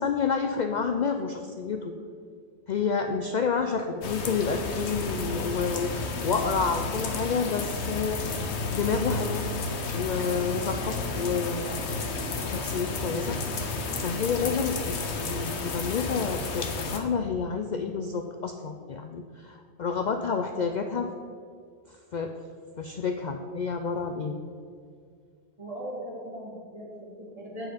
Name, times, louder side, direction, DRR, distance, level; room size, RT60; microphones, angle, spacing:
voice 1, 0.0-1.9 2.7-8.2 8.7-9.5 9.9-11.9 12.4-13.4 14.0-21.1 22.1-22.3 22.8-24.4, left 5 dB, 55° left, 5 dB, 0.5 m, -29 dB
sound 1, 4.0-17.0, left 3 dB, 80° left, 1.2 m, -32 dB
voice 2, 25.6-27.7, equal, 35° right, -4 dB, 2.4 m, -39 dB
7.9 x 7.3 x 5.1 m, 2.2 s
omnidirectional pair, 1.1 m